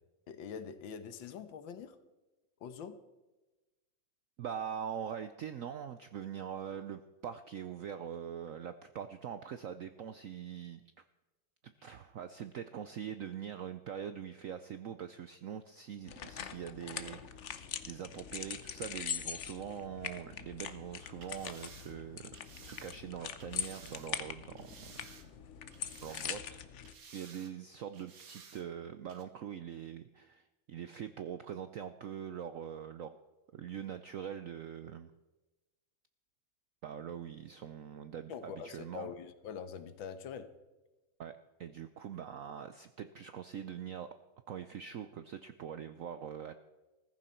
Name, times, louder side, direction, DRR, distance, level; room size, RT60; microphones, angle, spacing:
voice 1, 0.3-2.0 2.6-3.0 11.8-12.0 38.3-40.5, left 7 dB, 80° left, 11 dB, 1.8 m, -44 dB
voice 2, 4.4-10.8 11.6-22.2 22.6-24.9 26.0-26.6 27.0-33.2 33.5-35.1 36.8-39.1 41.2-41.3 41.6-44.1 44.5-46.6, right 8 dB, 75° right, 11 dB, 0.7 m, -43 dB
sound 1, 16.1-26.9, left 8 dB, 55° left, 0.8 m, -42 dB
sound 2, 21.1-24.1 24.6-25.4 25.7-26.5 26.8-27.5 27.9-28.6 29.1-29.2, right 6 dB, 50° right, 1.6 m, -55 dB
15.0 x 14.5 x 4.4 m, 1.1 s
omnidirectional pair, 2.1 m